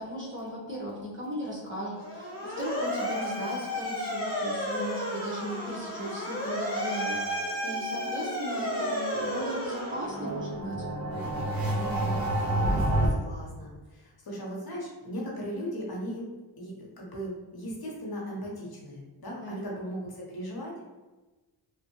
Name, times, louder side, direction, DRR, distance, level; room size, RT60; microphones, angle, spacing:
voice 1, 0.0-10.8 19.4-19.7, equal, 25° right, -6 dB, 1.2 m, -37 dB
Motor vehicle (road) / Siren, 2.0-10.6, left 1 dB, 30° left, 1.2 m, -33 dB
sound 1, 6.9-13.1, right 1 dB, 50° right, 0.9 m, -30 dB
voice 2, 11.7-16.3 16.6-20.9, equal, 55° left, -3 dB, 1.0 m, -38 dB
3.1 x 2.4 x 3.0 m, 1.2 s
cardioid pair, 65°, 44 cm